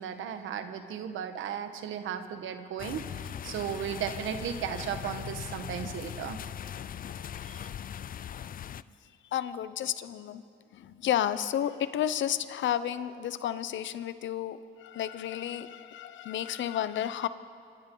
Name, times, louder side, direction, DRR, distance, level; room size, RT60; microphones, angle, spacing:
voice 1, 0.0-6.4 7.4-7.7, right 8 dB, 80° right, 8 dB, 1.5 m, -35 dB
sound 1, 2.8-8.8, left 9 dB, 45° left, 0.5 m, -40 dB
voice 2, 9.3-10.4 10.7-17.3, left 10 dB, 70° left, 13 dB, 0.9 m, -32 dB
25.5 x 25.5 x 3.9 m, 2.5 s
cardioid pair, 90°, 20 cm